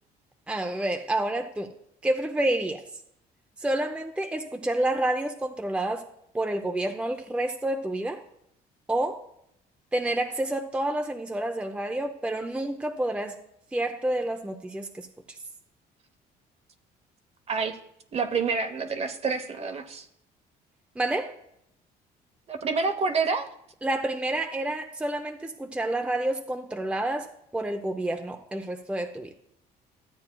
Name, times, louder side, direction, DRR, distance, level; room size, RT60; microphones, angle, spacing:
voice 1, 0.5-1.7 2.0-2.8 3.6-6.0 6.3-8.2 8.9-9.2 9.9-13.4 13.7-15.1 21.0-21.3 23.8-29.3, right 1 dB, 5° right, 4 dB, 0.6 m, -29 dB
voice 2, 18.1-20.1 22.5-23.5, right 4 dB, 40° right, 8 dB, 0.9 m, -28 dB
13.5 x 8.4 x 2.3 m, 0.76 s
cardioid pair, 110°, 17 cm